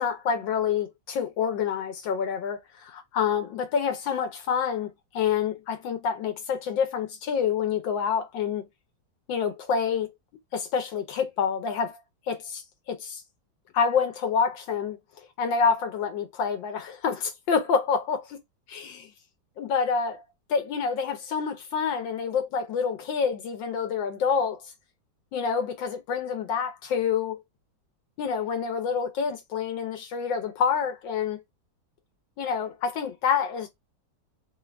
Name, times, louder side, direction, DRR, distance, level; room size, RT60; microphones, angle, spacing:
voice 1, 0.0-8.6 9.3-10.1 10.5-12.0 12.3-12.6 12.9-13.2 13.7-15.0 15.4-18.4 18.7-19.0 19.6-20.2 20.5-24.6 25.3-27.4 28.2-31.4 32.4-33.7, left 6 dB, 75° left, 1.3 m, -27 dB
3.7 x 2.4 x 3.2 m
omnidirectional pair, 2.2 m